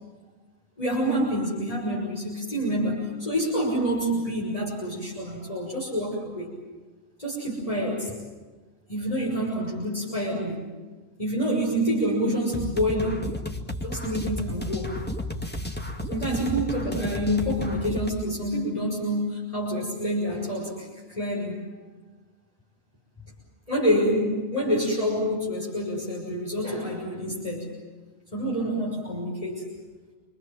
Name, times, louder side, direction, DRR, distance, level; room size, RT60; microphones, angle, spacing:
voice 1, 0.8-6.5 7.2-8.1 8.9-10.6 11.2-13.3 13.8-15.0 16.1-21.6 23.7-27.7 28.3-29.7, equal, 35° left, -4 dB, 6.6 m, -27 dB
sound 1, 12.5-18.1, left 1 dB, 10° left, 2.3 m, -32 dB
29.0 x 24.5 x 7.5 m, 1.3 s
omnidirectional pair, 1.1 m